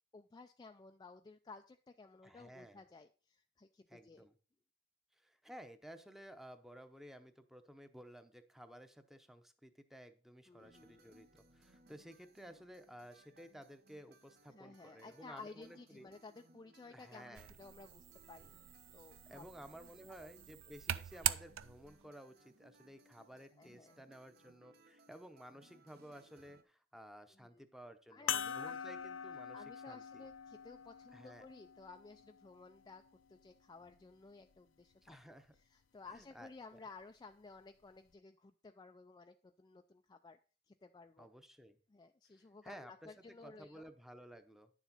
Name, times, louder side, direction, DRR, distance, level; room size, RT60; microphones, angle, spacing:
voice 1, 0.1-4.3 10.5-11.1 14.5-18.6 18.9-19.5 20.2-20.3 23.6-23.9 27.3-27.7 28.1-28.8 29.5-35.4 35.7-40.4 40.7-41.3 41.9-43.9, left 3 dB, 20° left, 6 dB, 0.3 m, -55 dB
voice 2, 2.2-2.8 3.9-4.4 5.1-16.1 16.9-17.5 19.3-30.3 31.1-31.5 35.0-35.6 36.1-36.8 41.2-41.8 42.3-44.7, equal, ahead, 9 dB, 0.8 m, -55 dB
sound 1, 10.6-26.6, right 2 dB, 55° right, 1.0 m, -66 dB
sound 2, 17.3-22.0, right 12 dB, 85° right, 0.5 m, -42 dB
sound 3, 28.3-33.1 33.9-34.0 36.1-36.2, left 8 dB, 80° left, 0.6 m, -44 dB
10.0 x 7.2 x 4.0 m, 0.38 s
head